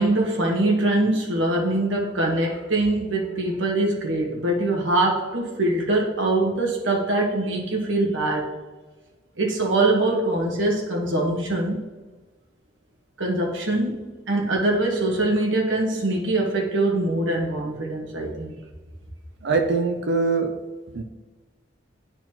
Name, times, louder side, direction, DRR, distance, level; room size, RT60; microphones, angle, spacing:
voice 1, 0.0-8.5 9.4-11.9 13.2-18.6, right 2 dB, 85° right, 0 dB, 1.4 m, -23 dB
voice 2, 19.4-20.5 20.9-21.0, right 4 dB, 65° right, 4 dB, 0.5 m, -22 dB
10.5 x 4.1 x 3.0 m, 1.2 s
head